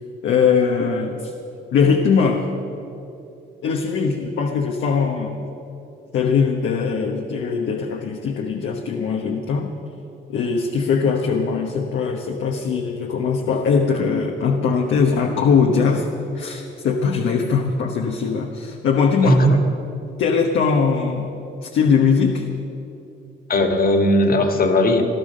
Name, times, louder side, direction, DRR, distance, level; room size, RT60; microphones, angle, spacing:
voice 1, 0.2-1.3 1.7-2.5 3.6-5.5 6.1-9.7 10.3-16.1 16.3-19.4 20.2-21.3 21.6-22.5, left 5 dB, 75° left, 2 dB, 1.2 m, -20 dB
voice 2, 19.2-19.5 23.5-25.0, left 1 dB, 45° left, 5 dB, 2.0 m, -17 dB
17.5 x 12.0 x 6.5 m, 2.9 s
cardioid pair, 90°, 20 cm